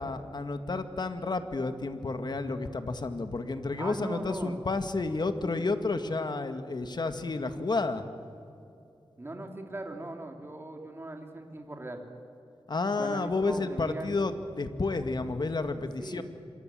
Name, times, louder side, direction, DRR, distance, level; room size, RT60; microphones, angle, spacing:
voice 1, 0.0-8.0 12.7-16.2, left 3 dB, 50° left, 8 dB, 1.8 m, -31 dB
voice 2, 3.8-4.6 9.2-12.0 13.0-14.1 16.0-16.2, right 2 dB, 25° right, 3 dB, 3.1 m, -39 dB
26.5 x 24.0 x 7.7 m, 2.6 s
wide cardioid pair, 90°, 10 cm